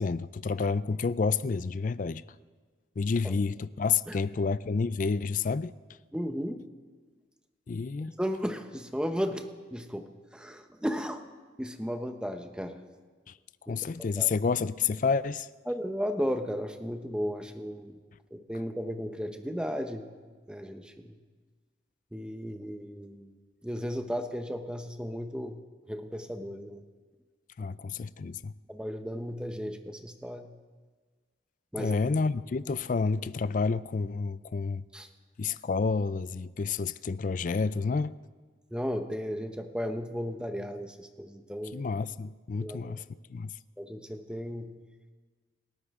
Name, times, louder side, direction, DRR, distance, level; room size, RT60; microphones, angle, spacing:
voice 1, 0.0-2.2 3.0-5.7 7.7-8.1 13.7-15.5 27.6-28.5 31.8-34.8 35.4-38.2 41.7-43.0 43.3-43.5, left 4 dB, 45° left, 0.4 m, -29 dB
voice 2, 6.1-6.6 8.2-9.4 9.7-10.1 10.3-11.2 11.6-12.8 13.7-13.8 14.2-14.3 15.7-18.0 18.3-20.1 20.5-21.2 22.1-23.4 23.6-25.6 25.9-26.8 28.7-30.5 31.7-32.0 34.9-35.1 38.7-41.8 42.6-42.9 43.8-44.7, equal, 5° right, 0.9 m, -34 dB
29.0 x 13.0 x 3.7 m
head